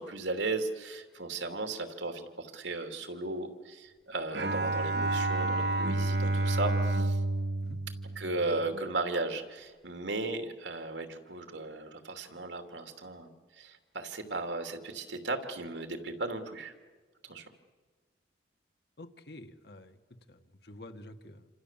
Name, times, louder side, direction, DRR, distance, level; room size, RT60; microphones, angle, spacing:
voice 1, 0.0-7.2 8.2-16.7 17.2-17.5, right 2 dB, 80° right, 6 dB, 2.9 m, -36 dB
Bowed string instrument, 4.3-8.8, right 2 dB, 65° right, 1.3 m, -30 dB
voice 2, 19.0-20.0 20.3-21.5, left 1 dB, 60° left, 7 dB, 1.7 m, -49 dB
28.0 x 26.5 x 7.5 m, 1.4 s
head